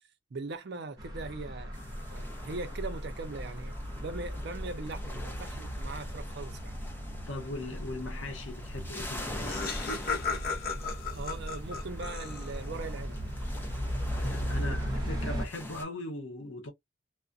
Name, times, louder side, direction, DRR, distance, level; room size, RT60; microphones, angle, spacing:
voice 1, 0.3-1.7 2.1-3.8 4.0-6.7 11.1-13.2 14.5-14.8, right 3 dB, 55° right, 0.5 m, -40 dB
sound 1, 1.0-15.5, equal, 20° right, 0.8 m, -37 dB
sound 2, 1.7-15.8, left 1 dB, 10° left, 0.5 m, -45 dB
voice 2, 7.3-9.7 14.1-16.7, left 2 dB, 75° left, 0.8 m, -40 dB
Laughter, 8.8-8.9 9.1-12.8, left 5 dB, 50° left, 0.8 m, -36 dB
2.3 x 2.1 x 2.5 m
head